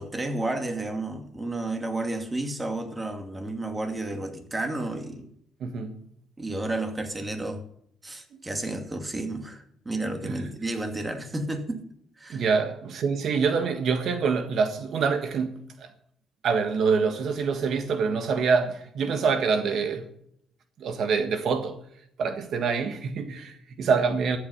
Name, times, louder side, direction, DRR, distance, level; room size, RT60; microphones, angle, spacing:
voice 1, 0.0-5.3 6.4-7.6 8.0-11.8 12.2-12.4, right 2 dB, 20° right, 2.4 m, -31 dB
voice 2, 5.6-6.0 8.3-8.4 10.2-10.4 12.3-15.9 16.4-20.1 20.8-21.8 22.2-24.4, right 5 dB, 65° right, 1.5 m, -26 dB
14.0 x 8.6 x 8.1 m
cardioid pair, 90°, 0 cm